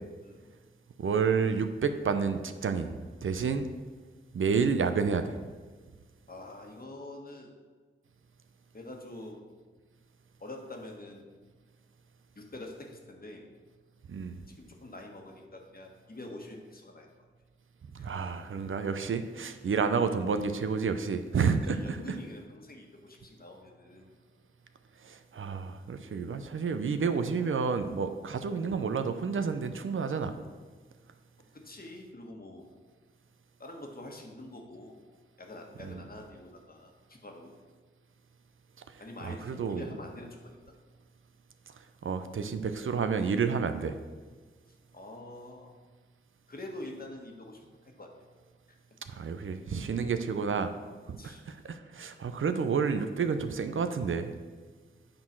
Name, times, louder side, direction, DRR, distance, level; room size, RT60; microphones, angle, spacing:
voice 1, 1.0-2.9 3.2-3.7 4.3-5.3 14.1-14.4 18.0-22.0 25.0-30.4 35.8-36.0 39.2-39.8 42.0-44.0 49.1-50.7 51.1-54.4, right 5 dB, 75° right, 9 dB, 0.6 m, -30 dB
voice 2, 6.3-7.5 8.7-9.4 10.4-11.3 12.3-13.5 14.6-17.1 18.0-18.1 21.7-24.1 31.5-32.6 33.6-34.9 35.4-37.5 39.0-40.5 44.9-45.8 46.5-47.7 48.0-48.1 51.2-51.4, left 1 dB, 45° left, 1 dB, 1.5 m, -45 dB
8.7 x 3.8 x 6.0 m, 1.4 s
cardioid pair, 40°, 21 cm